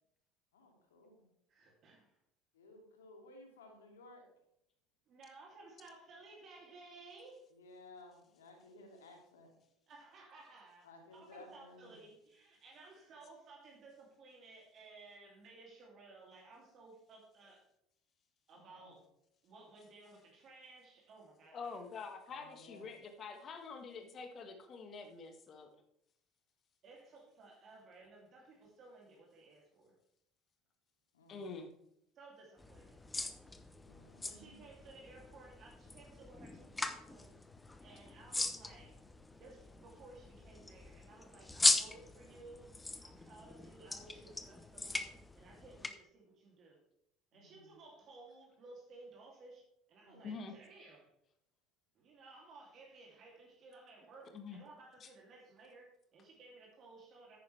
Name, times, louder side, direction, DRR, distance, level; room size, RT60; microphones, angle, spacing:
voice 1, 0.5-1.3 2.5-4.3 7.5-9.6 10.8-12.0 18.5-19.0 22.3-22.9 31.1-31.5 33.8-34.6 47.3-47.7 50.1-50.3, left 2 dB, 75° left, 2 dB, 2.6 m, -57 dB
voice 2, 1.5-2.1 5.1-7.4 9.9-17.7 18.5-19.1 19.4-21.8 26.8-29.9 32.1-33.0 34.2-37.4 37.8-39.0 39.4-42.7 43.0-46.8 47.3-49.6 49.9-51.1 51.9-57.4, right 3 dB, 45° right, -1 dB, 2.8 m, -57 dB
voice 3, 21.5-25.7 31.3-31.7 50.2-50.5 54.3-54.6 55.0-55.1, left 4 dB, 40° left, 6 dB, 1.5 m, -46 dB
sound 1, 32.6-45.9, left 2 dB, 15° left, 1.0 m, -39 dB
10.5 x 9.4 x 3.4 m, 0.77 s
figure-of-eight pair, 65°, 0 cm